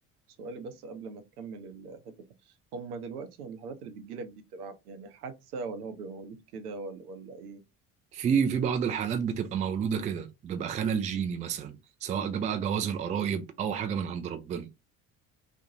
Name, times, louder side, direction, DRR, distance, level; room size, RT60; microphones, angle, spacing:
voice 1, 0.4-2.1 2.4-7.6, right 4 dB, 75° right, 0.6 m, -41 dB
voice 2, 8.1-14.7, right 7 dB, 20° right, 0.3 m, -30 dB
2.4 x 2.1 x 2.7 m
figure-of-eight pair, 55°, 45 cm